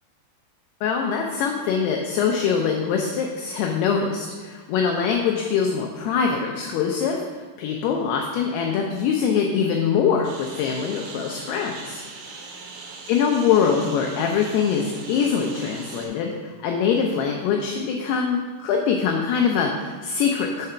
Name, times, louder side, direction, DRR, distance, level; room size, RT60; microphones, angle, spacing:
voice 1, 0.8-12.0 13.1-20.7, left 6 dB, 85° left, 2 dB, 2.3 m, -23 dB
Engine, 10.2-16.1, right 4 dB, 75° right, 2.4 m, -40 dB
6.6 x 4.8 x 5.5 m, 1.5 s
omnidirectional pair, 5.2 m